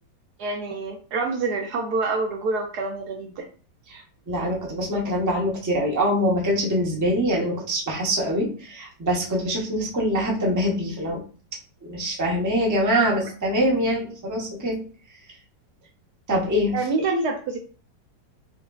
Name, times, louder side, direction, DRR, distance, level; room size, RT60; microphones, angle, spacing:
voice 1, 0.4-3.4 16.7-17.6, right 3 dB, 70° right, 3 dB, 1.1 m, -26 dB
voice 2, 3.9-11.2 11.8-14.8 16.3-16.7, equal, 15° right, -2 dB, 0.7 m, -24 dB
5.9 x 2.6 x 2.4 m, 0.39 s
omnidirectional pair, 2.0 m